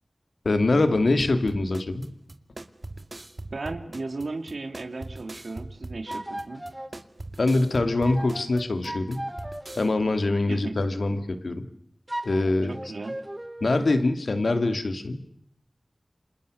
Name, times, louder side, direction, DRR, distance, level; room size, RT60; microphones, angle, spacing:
voice 1, 0.4-2.1 7.4-9.3 9.8-11.7 12.2-12.7 13.6-15.2, left 2 dB, 85° left, 9 dB, 2.7 m, -24 dB
sound 1, 1.2-9.9, right 2 dB, 50° right, 2.2 m, -41 dB
voice 2, 3.5-6.6 10.5-10.8 12.7-13.2, right 3 dB, 90° right, 6 dB, 3.2 m, -35 dB
sound 2, 6.1-6.9 8.0-9.8 12.1-14.0, right 1 dB, 20° right, 5.1 m, -36 dB
29.5 x 27.0 x 6.7 m, 0.68 s
wide cardioid pair, 55°, 0 cm